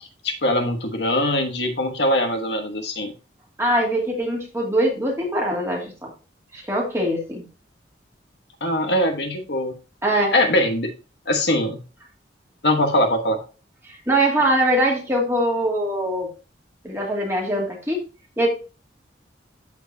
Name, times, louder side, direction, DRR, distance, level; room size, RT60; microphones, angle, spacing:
voice 1, 0.2-3.1 8.6-9.7 10.3-10.9 11.3-11.8 12.6-13.4, left 1 dB, 70° left, 5 dB, 1.3 m, -22 dB
voice 2, 3.6-6.1 6.5-7.4 10.0-10.3 13.9-16.3 16.8-18.0 18.4-18.5, right 1 dB, 15° right, -2 dB, 2.5 m, -22 dB
13.5 x 4.6 x 2.7 m, 0.33 s
head